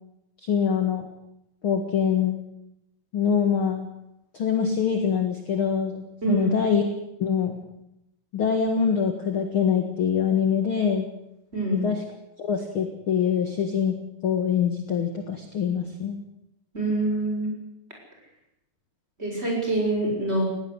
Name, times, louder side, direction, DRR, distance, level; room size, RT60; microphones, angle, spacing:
voice 1, 0.4-1.1 1.6-2.4 3.1-3.9 4.3-6.0 6.3-6.8 7.2-7.6 8.3-11.1 11.7-12.0 12.4-13.9 14.2-16.2, left 7 dB, 45° left, 5 dB, 2.2 m, -24 dB
voice 2, 11.5-11.9 16.7-17.5 19.2-20.4, right 2 dB, 15° right, 0 dB, 7.2 m, -25 dB
20.0 x 17.5 x 8.2 m, 0.83 s
omnidirectional pair, 3.8 m